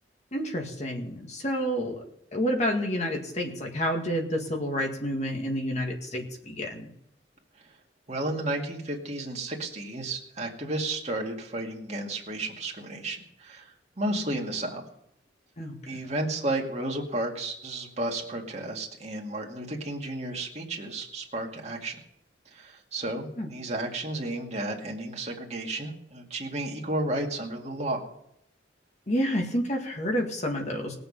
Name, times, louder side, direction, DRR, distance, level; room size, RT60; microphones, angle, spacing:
voice 1, 0.3-2.0 2.3-6.9 15.6-16.1 23.4-23.5 29.1-30.9, equal, 40° left, 2 dB, 2.0 m, -29 dB
voice 2, 8.1-13.7 14.0-14.9 15.9-22.0 22.5-28.1, right 1 dB, 40° right, 0 dB, 2.1 m, -32 dB
20.5 x 7.0 x 5.6 m, 0.76 s
head